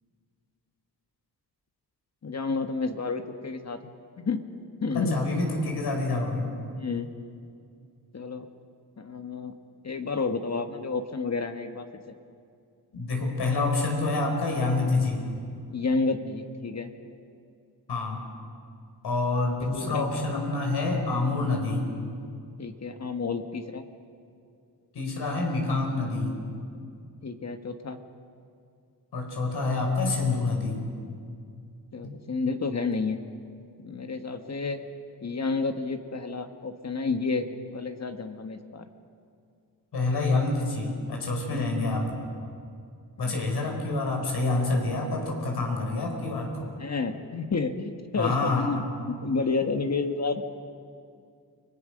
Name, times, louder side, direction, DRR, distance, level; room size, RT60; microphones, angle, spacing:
voice 1, 2.2-4.5 4.8-5.2 6.7-7.1 8.1-8.5 9.0-9.5 9.8-12.0 15.7-16.9 19.7-20.1 22.6-23.8 25.8-25.9 27.2-28.0 31.9-33.2 33.8-34.8 35.2-38.9 41.5-41.7 43.2-43.4 46.8-50.5, left 4 dB, 45° left, 7 dB, 1.5 m, -30 dB
voice 2, 4.9-6.5 12.9-15.2 17.9-18.2 19.0-21.8 24.9-26.3 29.1-30.8 32.0-32.1 39.9-42.1 43.2-46.7 48.2-48.7, left 3 dB, 80° left, 1 dB, 5.3 m, -27 dB
30.0 x 20.5 x 6.5 m, 2.4 s
cardioid pair, 90°, 39 cm